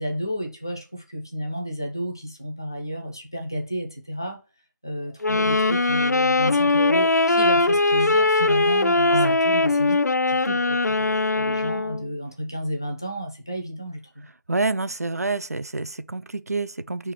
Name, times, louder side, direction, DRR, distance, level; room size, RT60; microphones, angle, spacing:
voice 1, 0.0-4.4 4.8-10.0 10.3-14.3, equal, 10° left, 0.5 m, -32 dB
Wind instrument woodwind instrument, 5.2-12.1, left 2 dB, 60° left, 0.4 m, -21 dB
voice 2, 14.5-17.1, right 3 dB, 55° right, 0.6 m, -27 dB
4.9 x 4.5 x 5.7 m
figure-of-eight pair, 180°, 10 cm